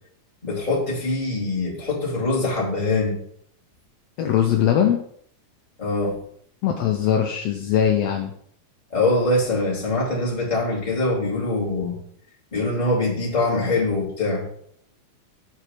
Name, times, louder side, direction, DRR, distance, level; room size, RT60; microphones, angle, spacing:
voice 1, 0.4-3.2 5.8-6.2 8.9-12.0 12.5-14.4, left 2 dB, 15° left, -6 dB, 2.4 m, -23 dB
voice 2, 4.2-5.0 6.6-8.3, left 9 dB, 80° left, 4 dB, 1.5 m, -20 dB
7.1 x 4.7 x 6.6 m, 0.65 s
omnidirectional pair, 3.7 m